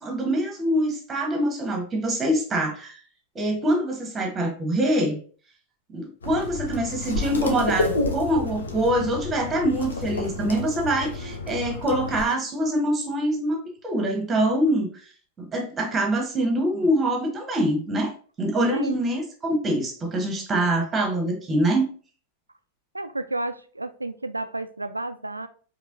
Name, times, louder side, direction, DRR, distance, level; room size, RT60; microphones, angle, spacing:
voice 1, 0.0-3.0 3.3-5.2 5.9-13.6 13.8-14.9 15.4-18.1 18.4-21.9, right 1 dB, 20° right, 3 dB, 1.2 m, -24 dB
sound 1, 6.2-12.2, left 2 dB, 70° left, 0.7 m, -30 dB
voice 2, 22.9-25.5, right 2 dB, 85° right, 11 dB, 0.3 m, -31 dB
4.8 x 2.9 x 2.6 m, 0.41 s
figure-of-eight pair, 90°, 0 cm